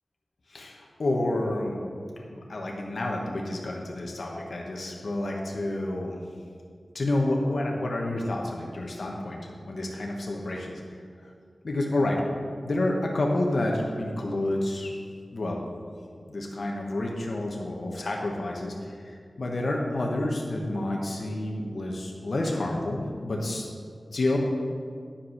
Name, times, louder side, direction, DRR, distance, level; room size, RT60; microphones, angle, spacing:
voice 1, 0.5-1.9 2.3-6.2 6.9-10.8 11.2-11.3 11.6-12.2 12.6-14.9 15.3-15.7 16.3-23.7 24.1-24.4, left 1 dB, 70° left, -1 dB, 1.1 m, -29 dB
10.0 x 5.4 x 5.7 m, 2.1 s
wide cardioid pair, 70°, 0 cm